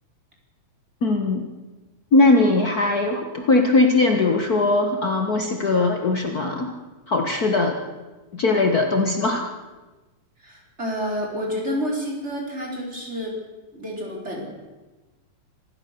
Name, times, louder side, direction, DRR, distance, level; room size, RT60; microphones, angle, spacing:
voice 1, 1.0-1.5 2.1-6.7 7.1-7.8 8.3-9.5, left 2 dB, 70° left, 4 dB, 0.8 m, -20 dB
voice 2, 10.4-13.4 13.7-14.5, equal, 15° right, -1 dB, 4.9 m, -29 dB
26.0 x 15.5 x 6.9 m, 1.2 s
omnidirectional pair, 4.1 m